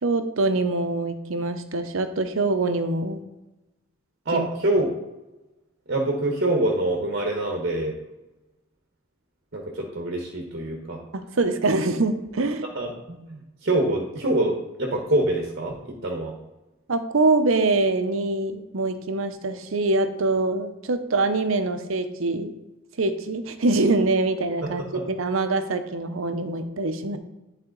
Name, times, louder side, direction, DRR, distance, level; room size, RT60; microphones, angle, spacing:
voice 1, 0.0-3.2 4.3-4.5 11.1-12.6 16.9-22.5 23.0-27.2, right 3 dB, 75° right, 9 dB, 0.7 m, -24 dB
voice 2, 4.3-4.9 5.9-7.9 9.5-11.0 12.7-12.9 13.3-15.7 16.0-16.3 24.6-25.1, right 1 dB, 50° right, 1 dB, 1.1 m, -25 dB
10.5 x 4.1 x 3.9 m, 1.0 s
head